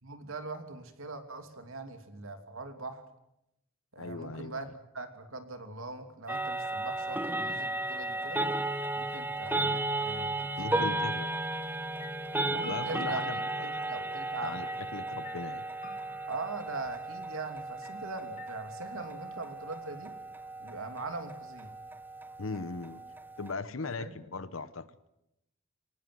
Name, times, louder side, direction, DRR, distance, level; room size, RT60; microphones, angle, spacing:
voice 1, 0.0-3.0 3.9-8.4 8.9-11.0 12.5-14.6 16.3-20.1 20.6-21.7 24.0-24.1, right 3 dB, 80° right, 7 dB, 2.8 m, -41 dB
voice 2, 4.0-4.7 10.6-11.3 12.5-13.9 14.4-15.6 22.4-23.0 23.4-24.9, left 3 dB, 75° left, 14 dB, 0.9 m, -39 dB
sound 1, 6.3-23.5, right 2 dB, 10° right, 0.9 m, -35 dB
sound 2, 11.6-11.7 12.0-13.9 14.6-16.7 17.8-18.0 18.4-19.7, left 6 dB, 40° left, 1.8 m, -52 dB
24.0 x 19.0 x 7.8 m, 0.84 s
head